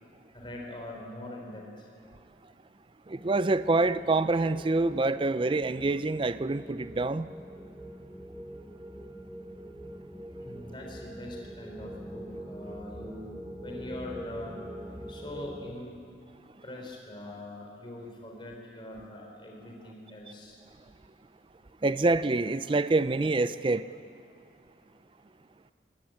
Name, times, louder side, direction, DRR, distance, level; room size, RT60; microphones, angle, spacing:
voice 1, 0.3-1.9 10.4-13.3 13.6-14.6 15.1-16.0 16.6-20.6, left 1 dB, 25° left, 3.7 m, -42 dB
voice 2, 3.1-7.3 21.8-23.9, right 2 dB, 25° right, 0.4 m, -26 dB
sound 1, 3.2-15.7, equal, 10° right, 1.2 m, -44 dB
21.5 x 18.5 x 8.9 m
head